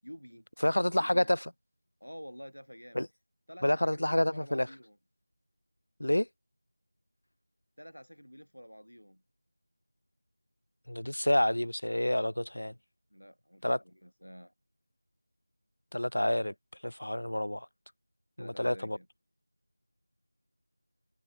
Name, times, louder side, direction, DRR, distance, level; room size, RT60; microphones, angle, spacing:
voice 1, 0.0-0.5 0.8-1.4 2.0-3.0 3.5-5.0 7.8-9.2 13.1-14.5 18.4-19.1, equal, 85° left, 6.4 m, -49 dB
voice 2, 0.6-1.5 2.9-3.1 3.6-4.7 6.0-6.3 10.9-12.7 13.6-13.8 15.9-17.7 18.4-19.0, left 1 dB, 65° left, 0.7 m, -28 dB
figure-of-eight pair, 170°, 0 cm